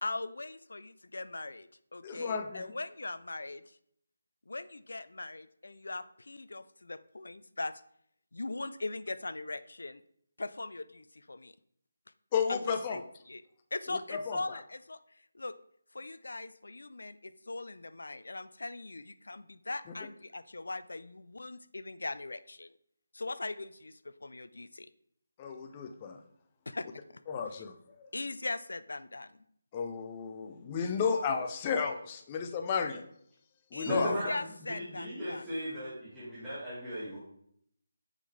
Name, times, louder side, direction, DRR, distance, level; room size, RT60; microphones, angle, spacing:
voice 1, 0.0-3.8 4.5-7.8 8.3-10.0 10.4-11.5 12.5-12.6 12.9-13.4 13.7-15.0 15.3-15.5 15.9-22.7 23.1-24.9 26.7-27.2 27.5-27.6 28.1-29.4 33.7-35.5, left 2 dB, 85° left, 14 dB, 0.5 m, -40 dB
voice 2, 2.0-2.7 12.3-13.0 13.9-14.4 25.4-26.2 27.3-27.7 29.7-33.1 33.7-34.1, left 6 dB, 20° left, 6 dB, 0.5 m, -33 dB
voice 3, 33.9-37.2, equal, ahead, -16 dB, 2.0 m, -36 dB
8.3 x 5.6 x 3.3 m, 0.69 s
figure-of-eight pair, 170°, 0 cm